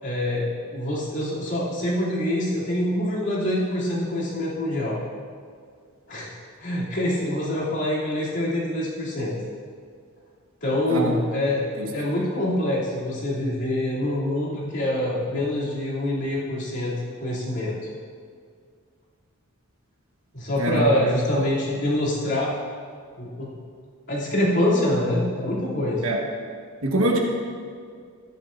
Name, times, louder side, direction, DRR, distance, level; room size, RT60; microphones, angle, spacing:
voice 1, 0.0-5.0 6.1-6.3 6.6-9.3 10.6-11.6 11.9-16.9 17.2-17.7 20.3-22.5 23.2-23.5 24.1-26.1, left 1 dB, 55° left, -7 dB, 3.0 m, -25 dB
voice 2, 20.6-20.9 26.0-26.2 26.8-27.2, right 1 dB, 65° right, 0 dB, 1.4 m, -23 dB
14.0 x 10.5 x 2.6 m, 2.1 s
head